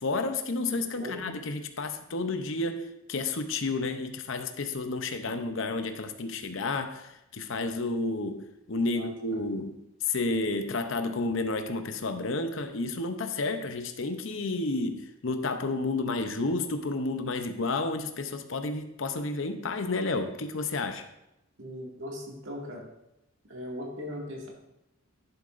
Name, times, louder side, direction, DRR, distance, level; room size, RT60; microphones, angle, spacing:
voice 1, 0.0-21.1, left 3 dB, 65° left, 8 dB, 0.7 m, -31 dB
voice 2, 0.9-1.3 8.7-9.4 21.6-22.9 23.5-24.5, left 1 dB, 60° right, -2 dB, 2.2 m, -39 dB
10.5 x 7.5 x 2.6 m, 0.86 s
head